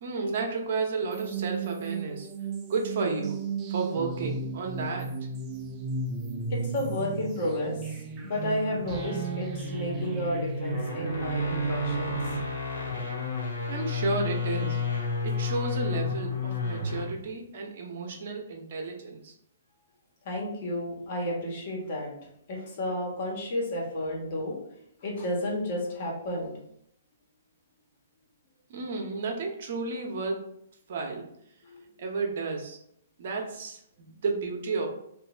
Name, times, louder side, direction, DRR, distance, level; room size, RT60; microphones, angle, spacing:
voice 1, 0.0-2.3 2.7-3.4 3.7-5.1 13.7-19.3 28.7-30.5 30.9-31.3 32.0-32.8 33.2-34.9, right 4 dB, 55° right, 2 dB, 0.8 m, -32 dB
sound 1, 1.1-12.4, right 5 dB, 25° right, 0.5 m, -34 dB
voice 2, 6.5-12.2 20.2-22.1 22.5-24.6 25.0-26.5 31.6-32.0, left 1 dB, 50° left, -2 dB, 1.3 m, -32 dB
sound 2, 8.7-17.2, left 5 dB, 75° left, 0.9 m, -32 dB
3.0 x 2.6 x 3.8 m, 0.73 s
figure-of-eight pair, 125°, 0 cm